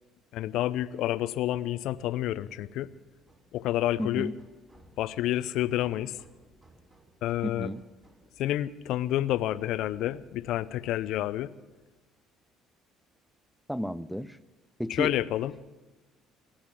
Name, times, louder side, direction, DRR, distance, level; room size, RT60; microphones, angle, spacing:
voice 1, 0.3-2.9 3.5-4.3 5.0-6.2 7.2-7.7 8.4-11.5 14.9-15.5, left 13 dB, 70° left, 17 dB, 0.5 m, -29 dB
sound 1, 3.2-9.2, right 2 dB, 30° right, 5.2 m, -60 dB
voice 2, 4.0-4.3 7.4-7.8 13.7-14.4 14.8-15.2, equal, ahead, 19 dB, 0.5 m, -32 dB
20.0 x 8.8 x 7.4 m, 1.2 s
hypercardioid pair, 65°, 0 cm